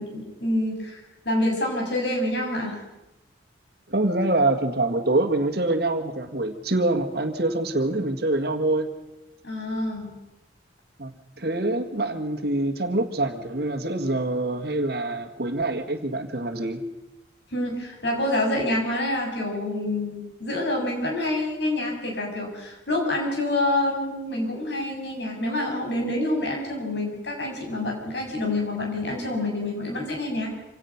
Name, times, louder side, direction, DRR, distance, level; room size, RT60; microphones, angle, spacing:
voice 1, 0.0-2.8 9.4-10.1 17.5-30.5, left 1 dB, 65° left, 0 dB, 6.9 m, -27 dB
voice 2, 3.9-8.9 11.0-16.8, right 2 dB, 55° right, 6 dB, 1.8 m, -25 dB
26.5 x 17.5 x 5.9 m, 0.99 s
head